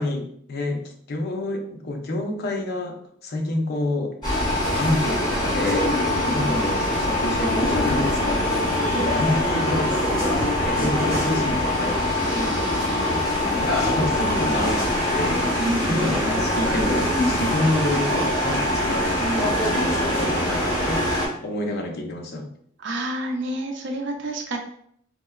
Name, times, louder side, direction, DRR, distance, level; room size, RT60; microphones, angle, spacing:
voice 1, 0.0-3.0 3.2-4.1 4.8-15.4 15.9-22.5, left 2 dB, 55° left, 3 dB, 0.5 m, -28 dB
sound 1, 4.2-21.3, left 1 dB, 20° left, 1.3 m, -23 dB
voice 2, 6.2-6.6 8.9-9.2 10.8-11.0 13.3-13.6 15.6-16.2 19.2-19.6 22.8-24.6, right 1 dB, 65° right, 3 dB, 0.5 m, -30 dB
4.2 x 2.0 x 2.3 m, 0.66 s
head